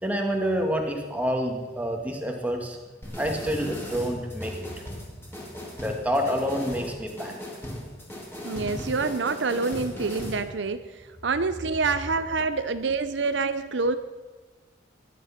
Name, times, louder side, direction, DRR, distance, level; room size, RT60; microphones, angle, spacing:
voice 1, 0.0-2.8 3.2-4.7 5.8-7.4, equal, 10° right, 1 dB, 2.1 m, -28 dB
sound 1, 3.0-10.4, left 1 dB, 10° left, 3.6 m, -38 dB
voice 2, 8.4-10.8 11.2-14.0, right 4 dB, 65° right, 10 dB, 0.7 m, -26 dB
20.5 x 11.0 x 5.9 m, 1.4 s
head